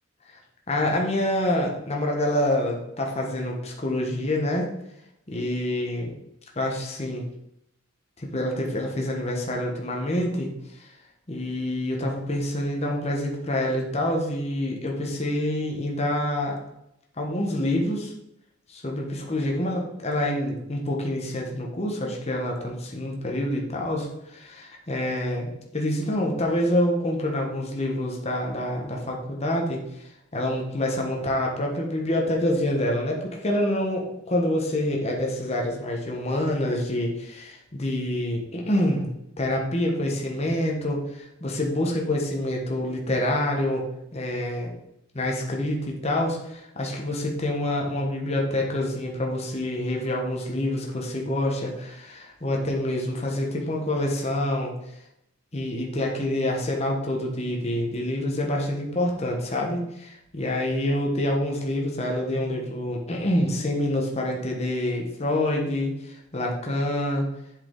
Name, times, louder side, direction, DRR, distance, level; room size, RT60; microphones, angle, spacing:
voice 1, 0.7-4.7 5.3-6.1 6.6-7.3 8.2-10.5 10.8-10.9 11.3-16.6 17.2-18.1 18.7-43.8 44.1-44.7 45.1-54.7 55.5-67.3, left 1 dB, 30° left, 0 dB, 1.2 m, -27 dB
7.8 x 4.8 x 3.8 m, 0.83 s
head